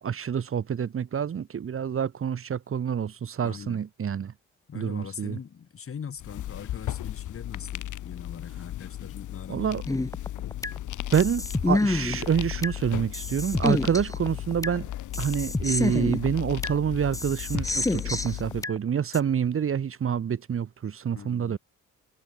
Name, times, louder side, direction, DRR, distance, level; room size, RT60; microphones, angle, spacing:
voice 1, 0.0-4.3 4.7-5.4 9.5-9.8 11.1-14.9 15.2-21.6, right 8 dB, 45° right, 1.7 m, -27 dB
voice 2, 3.4-3.8 4.7-9.8 21.1-21.6, left 7 dB, 45° left, 4.8 m, -41 dB
sound 1, 6.2-18.6, left 13 dB, 80° left, 4.7 m, -36 dB
sound 2, 9.9-10.8 11.1-12.8 13.1-14.8 15.1-16.8 17.1-18.8 19.1-19.2, left 2 dB, 10° left, 1.3 m, -28 dB
cardioid pair, 90°, 30 cm